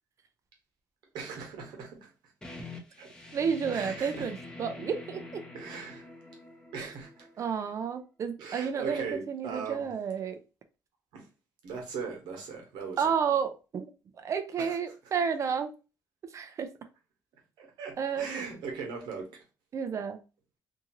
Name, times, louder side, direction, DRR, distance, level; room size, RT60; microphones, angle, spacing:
voice 1, 1.1-2.1 3.0-3.1 3.7-4.3 5.5-6.1 6.7-7.3 8.4-9.9 11.1-11.2 11.6-13.1 14.6-14.8 17.6-19.3, right 5 dB, 90° right, 1.1 m, -39 dB
sound 1, 2.4-7.9, left 3 dB, 10° left, 0.7 m, -46 dB
voice 2, 3.3-5.4 6.8-6.9 7.4-10.4 13.0-13.9 14.2-15.7 16.3-16.7 18.0-18.4 19.7-20.2, right 7 dB, 45° right, 0.4 m, -31 dB
2.7 x 2.4 x 2.9 m
cardioid pair, 120°, 7 cm